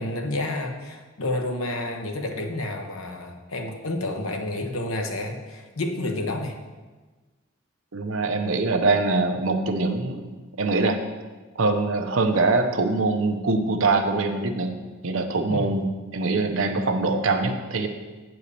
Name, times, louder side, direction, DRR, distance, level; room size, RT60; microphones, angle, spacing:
voice 1, 0.0-6.5 15.5-15.7, left 2 dB, 90° left, 4 dB, 1.1 m, -30 dB
voice 2, 7.9-10.3 10.6-11.0 11.6-14.7 15.0-17.9, right 3 dB, 75° right, 6 dB, 0.8 m, -23 dB
8.5 x 4.6 x 6.7 m, 1.3 s
head